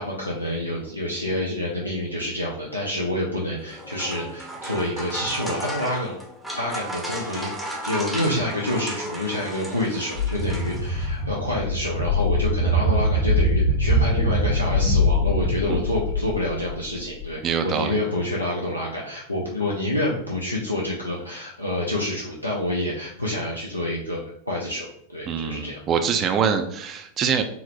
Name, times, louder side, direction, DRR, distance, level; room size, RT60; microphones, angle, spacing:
voice 1, 0.0-6.2 6.5-7.5 7.8-24.2 24.5-25.8, left 1 dB, 85° left, -4 dB, 0.5 m, -28 dB
sound 1, 3.6-11.2, right 1 dB, ahead, 0.6 m, -34 dB
sound 2, 10.1-17.2, left 1 dB, 30° left, 1.3 m, -23 dB
voice 2, 17.4-18.0 25.3-27.4, right 7 dB, 30° right, 6 dB, 0.3 m, -24 dB
3.8 x 2.0 x 2.8 m, 0.69 s
figure-of-eight pair, 90°, 0 cm